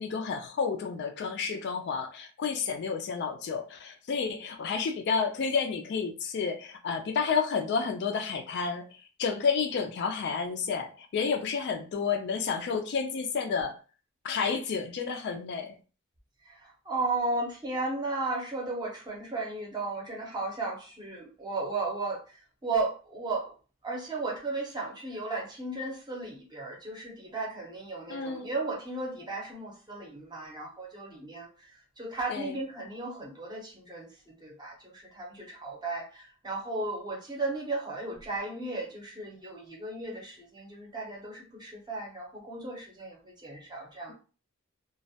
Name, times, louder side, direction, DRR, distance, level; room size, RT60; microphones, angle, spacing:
voice 1, 0.0-8.9 9.2-13.8 14.2-15.7 28.1-28.5 32.3-32.5, left 5 dB, 50° left, 5 dB, 0.3 m, -30 dB
voice 2, 16.4-23.5 23.8-31.7 32.0-34.1 34.4-44.1, right 3 dB, 20° right, -1 dB, 0.6 m, -35 dB
2.2 x 2.1 x 2.7 m, 0.36 s
head